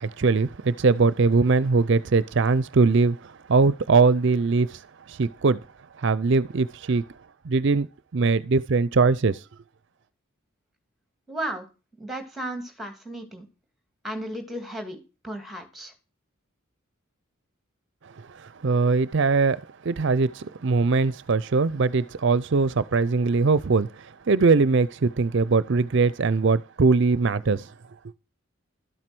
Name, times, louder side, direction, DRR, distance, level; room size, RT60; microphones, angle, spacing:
voice 1, 0.0-4.8 5.1-5.6 6.0-7.0 7.5-7.9 8.1-9.4 18.3-27.7, right 4 dB, 55° right, 0.5 m, -21 dB
voice 2, 11.3-11.7 12.0-13.5 14.0-15.0 15.2-15.9, right 1 dB, ahead, 2.3 m, -34 dB
12.5 x 7.7 x 6.0 m
head